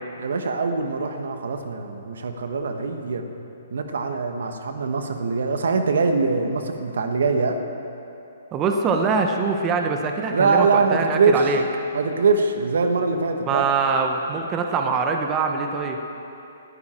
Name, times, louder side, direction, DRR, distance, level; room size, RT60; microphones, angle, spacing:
voice 1, 0.2-3.3 3.7-7.6 10.3-11.5 11.9-13.6, right 4 dB, 75° right, 6 dB, 1.3 m, -23 dB
voice 2, 8.5-11.6 13.4-16.0, right 5 dB, 25° right, 3 dB, 1.2 m, -23 dB
20.0 x 12.5 x 4.5 m, 2.8 s
hypercardioid pair, 140°, 0 cm